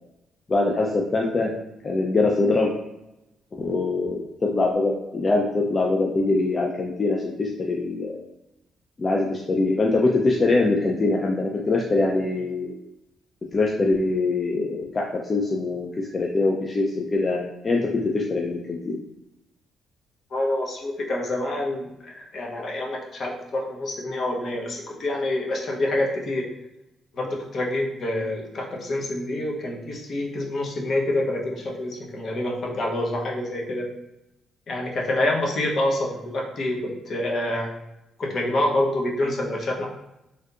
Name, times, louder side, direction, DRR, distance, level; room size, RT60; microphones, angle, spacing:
voice 1, 0.5-1.5 1.8-2.7 3.6-8.2 9.0-12.7 13.5-19.0, left 3 dB, 35° left, -1 dB, 0.4 m, -23 dB
voice 2, 20.3-26.5 27.1-33.9 34.7-37.7 38.2-39.8, left 1 dB, 55° left, -1 dB, 0.8 m, -27 dB
3.4 x 2.7 x 2.4 m, 0.92 s
cardioid pair, 90°, 0 cm